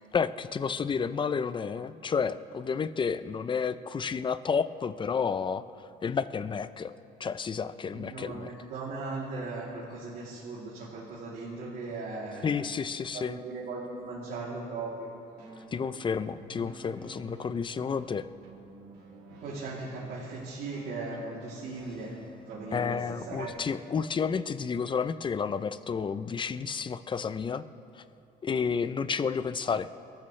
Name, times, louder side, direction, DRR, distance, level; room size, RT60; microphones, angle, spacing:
voice 1, 0.1-6.9 7.2-8.5 12.4-13.4 15.7-18.3 22.7-27.6 28.0-28.1 28.4-29.9, left 6 dB, 30° left, 13 dB, 0.6 m, -31 dB
voice 2, 7.9-12.5 13.1-15.1 19.4-22.1 22.5-23.0 23.3-23.5, right 3 dB, 70° right, -7 dB, 3.1 m, -38 dB
sound 1, 15.4-23.5, right 3 dB, 85° right, 3.3 m, -51 dB
28.5 x 14.0 x 3.3 m, 2.8 s
cardioid pair, 110°, 17 cm